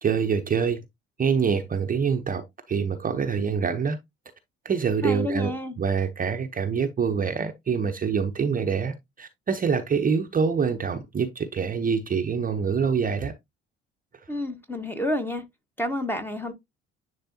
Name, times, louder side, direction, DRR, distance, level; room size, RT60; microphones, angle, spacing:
voice 1, 0.0-0.8 1.2-4.0 4.6-13.3, right 6 dB, 25° right, 0.8 m, -25 dB
voice 2, 5.0-5.8 14.3-15.4 15.8-16.5, left 1 dB, 5° left, 1.3 m, -29 dB
10.0 x 3.4 x 2.8 m
figure-of-eight pair, 55°, 31 cm